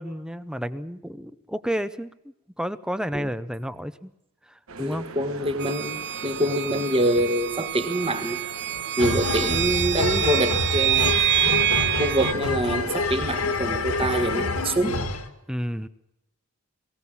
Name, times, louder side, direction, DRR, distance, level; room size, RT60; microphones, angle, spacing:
voice 1, 0.0-2.1 2.6-4.1 4.5-5.1 15.5-15.9, equal, 5° right, 14 dB, 0.7 m, -31 dB
sound 1, 4.7-14.7, right 4 dB, 65° right, 1.2 m, -41 dB
voice 2, 4.8-8.4 9.0-11.2 12.0-15.1, right 1 dB, 25° right, 8 dB, 1.7 m, -25 dB
sound 2, 5.6-12.3, right 11 dB, 50° right, 1.0 m, -26 dB
sound 3, 9.0-15.3, left 3 dB, 80° left, 2.0 m, -27 dB
22.5 x 16.5 x 7.3 m, 0.85 s
head